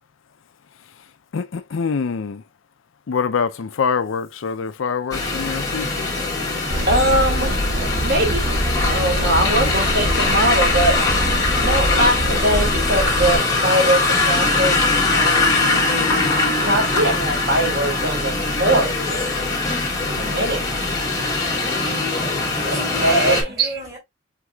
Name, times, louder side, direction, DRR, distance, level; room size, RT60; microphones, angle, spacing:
voice 1, 0.8-2.4 3.1-6.1, left 5 dB, 75° left, 0.5 m, -25 dB
sound 1, 5.1-23.4, left 3 dB, 15° left, 1.3 m, -21 dB
voice 2, 6.4-7.7 8.0-8.5 8.9-14.8 15.1-15.7 16.5-19.4 20.1-20.7 22.6-23.7, right 1 dB, 50° right, 1.4 m, -22 dB
sound 2, 6.7-13.4, equal, 70° right, 1.4 m, -24 dB
voice 3, 22.0-24.0, right 2 dB, 15° right, 2.6 m, -36 dB
4.7 x 3.7 x 2.3 m
head